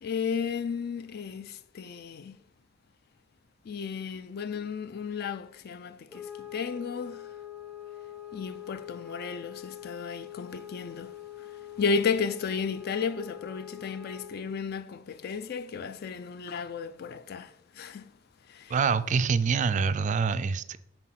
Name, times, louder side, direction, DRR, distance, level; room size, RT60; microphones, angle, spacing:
voice 1, 0.0-2.4 3.6-7.3 8.3-18.1 18.5-18.7, left 5 dB, 50° left, 0.4 m, -34 dB
sound 1, 6.1-14.5, left 11 dB, 5° left, 0.7 m, -44 dB
voice 2, 18.7-20.8, right 5 dB, 40° right, 0.3 m, -25 dB
6.0 x 4.3 x 5.8 m
head